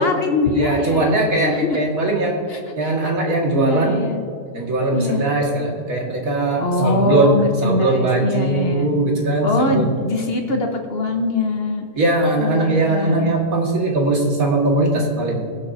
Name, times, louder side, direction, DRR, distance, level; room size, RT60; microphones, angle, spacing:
voice 1, 0.0-1.8 2.5-2.9 3.5-4.2 4.9-5.2 6.6-8.9 9.4-11.9 12.4-13.3, left 2 dB, 40° left, 3 dB, 0.9 m, -23 dB
voice 2, 0.5-2.4 2.8-4.0 4.5-9.9 12.0-15.4, right 2 dB, 50° right, 0 dB, 2.2 m, -20 dB
21.5 x 8.2 x 2.7 m, 2.3 s
omnidirectional pair, 2.1 m